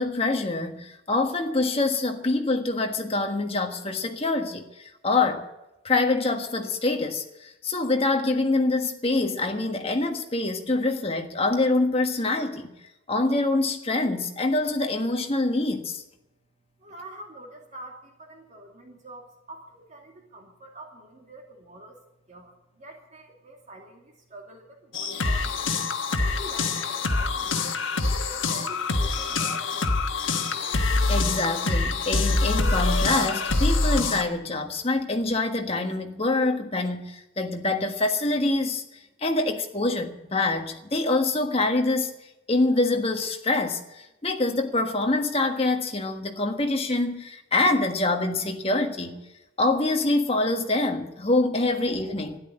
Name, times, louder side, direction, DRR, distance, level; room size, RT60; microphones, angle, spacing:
voice 1, 0.0-5.5 5.8-12.7 13.1-16.0 31.1-38.8 39.2-42.1 42.5-49.2 49.6-52.4, left 2 dB, 30° left, 1.5 m, -25 dB
voice 2, 16.8-22.0 22.3-25.6 26.2-27.6 28.1-30.2, right 1 dB, 35° right, 2.5 m, -45 dB
sound 1, 24.9-34.2, left 3 dB, 65° left, 1.4 m, -25 dB
12.5 x 11.0 x 9.9 m
head